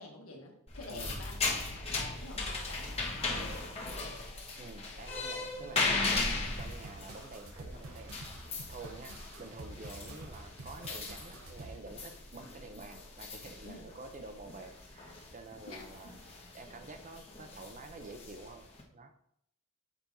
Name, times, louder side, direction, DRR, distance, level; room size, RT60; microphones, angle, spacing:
voice 1, 0.0-4.2 5.5-6.7 13.6-13.9 15.7-16.1, left 2 dB, 90° left, 1 dB, 1.6 m, -49 dB
sound 1, 0.7-18.8, left 3 dB, 30° left, 1.4 m, -38 dB
voice 2, 0.9-1.2 3.3-3.6 4.6-8.2 8.7-16.2 16.5-18.7 18.9-19.1, right 3 dB, 40° right, 6 dB, 0.8 m, -49 dB
sound 2, 6.6-11.8, right 2 dB, 80° right, 1.0 m, -48 dB
8.0 x 4.4 x 4.1 m, 0.73 s
head